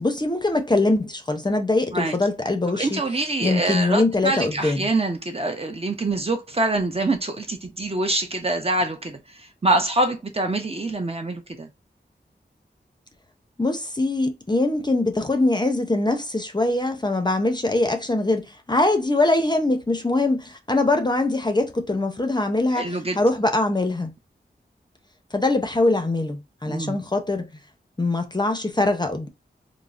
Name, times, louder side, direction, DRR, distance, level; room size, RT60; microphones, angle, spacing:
voice 1, 0.0-3.0 3.4-4.9 13.6-24.1 25.3-27.5 28.0-29.3, left 2 dB, 25° left, 0.5 m, -22 dB
voice 2, 2.7-11.7 22.7-23.2 26.6-27.0, right 2 dB, 30° right, 0.6 m, -25 dB
3.4 x 2.0 x 2.4 m
wide cardioid pair, 65°, 19 cm